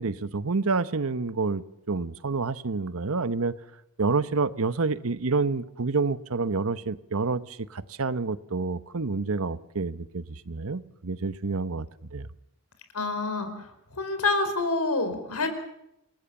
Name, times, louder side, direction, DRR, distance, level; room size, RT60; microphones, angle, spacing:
voice 1, 0.0-3.5 4.0-11.9 12.1-12.3, right 4 dB, 65° right, 0.9 m, -28 dB
voice 2, 12.9-13.7 13.9-15.5, left 3 dB, 85° left, 4.9 m, -27 dB
27.5 x 19.5 x 7.2 m
head